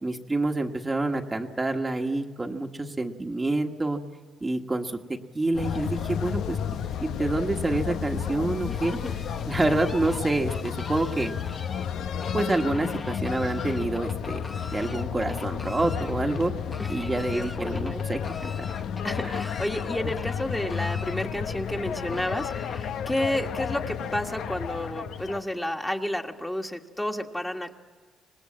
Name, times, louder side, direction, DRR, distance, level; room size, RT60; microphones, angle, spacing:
voice 1, 0.0-4.0 4.4-6.6 7.0-8.9 9.5-11.3 12.3-14.4 14.7-16.5 16.9-18.5 19.2-19.3, right 2 dB, 20° right, 2 dB, 1.4 m, -27 dB
sound 1, 5.5-25.4, left 8 dB, 75° left, 0.9 m, -32 dB
Fowl, 8.4-23.1, left 3 dB, 25° left, 1.0 m, -44 dB
voice 2, 8.6-9.1 16.8-18.0 19.0-27.7, left 1 dB, 10° left, 3 dB, 1.7 m, -31 dB
25.5 x 19.5 x 7.7 m, 1.5 s
cardioid pair, 90°, 0 cm